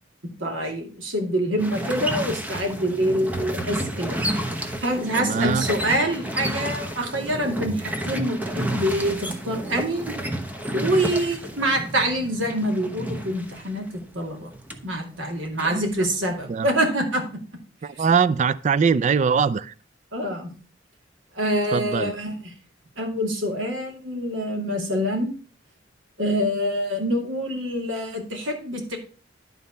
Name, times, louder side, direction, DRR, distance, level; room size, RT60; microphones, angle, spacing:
voice 1, 0.4-4.2 4.8-10.1 10.7-13.9 14.1-14.5 14.8-17.2 20.1-20.5 21.3-22.5 23.0-25.3 26.2-29.0, equal, 90° right, 2.3 m, -26 dB
sound 1, 1.6-14.9 15.1-16.5, right 1 dB, 10° right, 0.9 m, -31 dB
voice 2, 5.2-5.7 15.7-15.9 16.5-16.7 17.8-19.7 21.7-22.2, right 5 dB, 40° right, 0.3 m, -22 dB
11.5 x 4.1 x 5.4 m
head